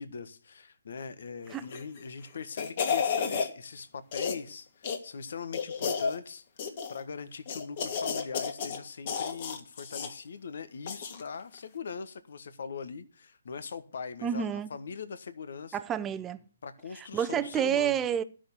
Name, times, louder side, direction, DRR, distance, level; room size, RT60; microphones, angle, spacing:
voice 1, 0.0-15.8 16.6-18.0, left 5 dB, 65° left, 1.3 m, -41 dB
sound 1, 1.6-2.0 2.3-3.5 4.1-4.5 4.8-5.0 5.5-6.2 6.6-7.0 7.5-8.8 9.0-10.1 10.9-11.2 11.5-11.6, left 6 dB, 45° left, 2.2 m, -31 dB
voice 2, 14.2-14.7 15.7-16.4 17.0-18.2, right 9 dB, 15° right, 0.7 m, -29 dB
13.0 x 6.4 x 8.2 m
hypercardioid pair, 145°, 0 cm